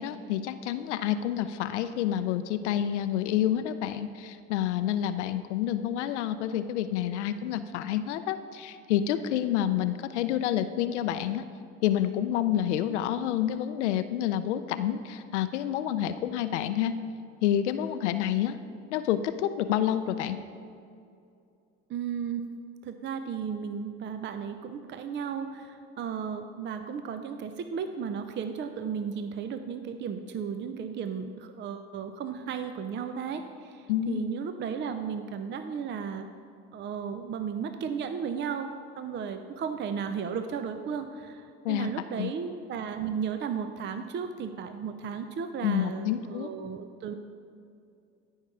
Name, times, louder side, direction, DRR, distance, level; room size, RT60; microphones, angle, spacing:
voice 1, 0.0-11.4 11.8-17.0 17.4-18.6 18.9-20.4 33.9-34.2 41.6-41.9 42.2-42.3 45.6-46.5, left 11 dB, 80° left, 11 dB, 0.5 m, -28 dB
voice 2, 21.9-22.5 22.8-36.3 36.7-38.7 39.0-47.1, right 7 dB, 35° right, 9 dB, 0.5 m, -34 dB
13.0 x 5.5 x 4.8 m, 2.5 s
hypercardioid pair, 75°, 34 cm